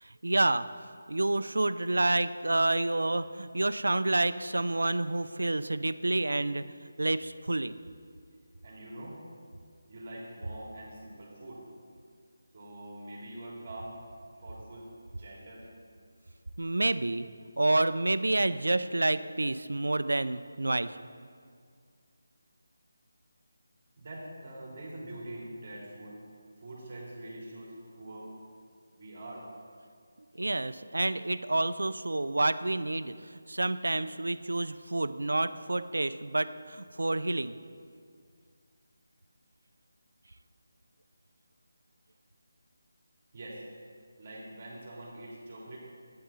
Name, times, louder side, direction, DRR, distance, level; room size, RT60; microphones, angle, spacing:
voice 1, 0.0-0.7 1.1-7.7 16.6-17.3 17.6-20.9 30.4-37.6, right 2 dB, 85° right, 13 dB, 0.4 m, -29 dB
voice 2, 8.6-9.2 9.9-11.6 12.5-14.0 14.4-14.9 15.2-15.7 24.0-26.2 26.6-28.3 29.0-29.5 43.3-43.7 44.2-45.8, right 1 dB, 40° right, -4 dB, 2.6 m, -44 dB
11.5 x 8.6 x 4.2 m, 2.2 s
figure-of-eight pair, 165°, 0 cm